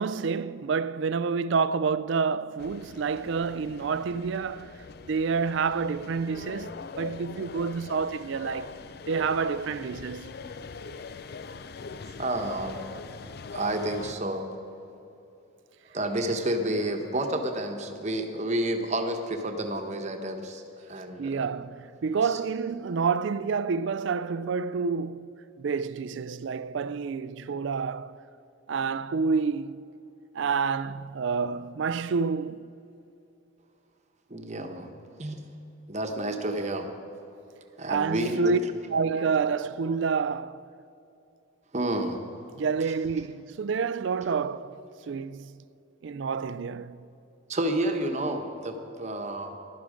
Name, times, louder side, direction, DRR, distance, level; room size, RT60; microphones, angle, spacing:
voice 1, 0.0-4.7 5.1-8.7 9.1-10.4 21.2-25.3 25.6-28.2 28.7-29.8 30.4-32.6 37.9-38.6 38.9-40.7 42.6-44.8 45.1-45.5 46.0-47.1, right 5 dB, 60° right, 0.4 m, -28 dB
sound 1, 2.6-14.1, left 5 dB, 50° left, 0.4 m, -42 dB
voice 2, 12.2-12.8 13.5-14.5 15.9-21.5 22.2-22.4 34.3-34.9 35.2-35.4 35.9-36.9 37.8-38.5 41.7-42.2 42.8-42.9 47.5-49.5, right 1 dB, 35° right, 1.0 m, -30 dB
16.0 x 11.5 x 5.1 m
head